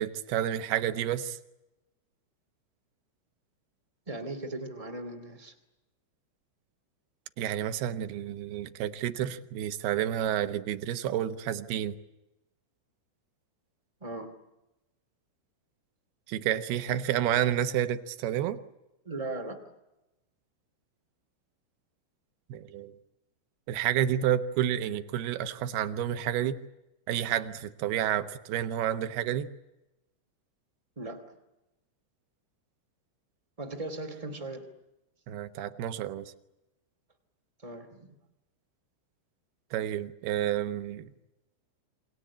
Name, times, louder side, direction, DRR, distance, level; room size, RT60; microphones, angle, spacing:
voice 1, 0.0-1.4 7.4-11.9 16.3-18.6 22.5-22.9 23.7-26.6 27.1-29.5 35.3-36.3 39.7-41.1, right 11 dB, 75° right, 10 dB, 2.5 m, -30 dB
voice 2, 4.1-5.5 14.0-14.3 19.0-19.7 30.9-31.4 33.6-34.7 37.6-38.1, right 2 dB, 20° right, 4 dB, 0.9 m, -38 dB
28.5 x 22.5 x 8.6 m, 0.96 s
omnidirectional pair, 5.7 m